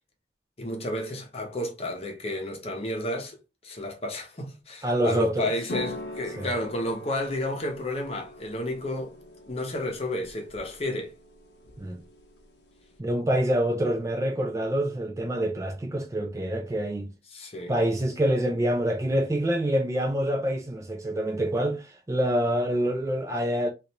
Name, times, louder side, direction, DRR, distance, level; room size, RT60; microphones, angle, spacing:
voice 1, 0.6-9.1 9.5-11.1 17.3-17.7, left 1 dB, 35° left, 0.8 m, -31 dB
voice 2, 4.8-5.5 6.4-6.5 11.8-12.0 13.0-17.1 17.7-23.7, right 1 dB, 15° right, 0.4 m, -26 dB
sound 1, 5.7-13.0, left 1 dB, 65° left, 0.7 m, -43 dB
3.2 x 2.5 x 2.8 m
head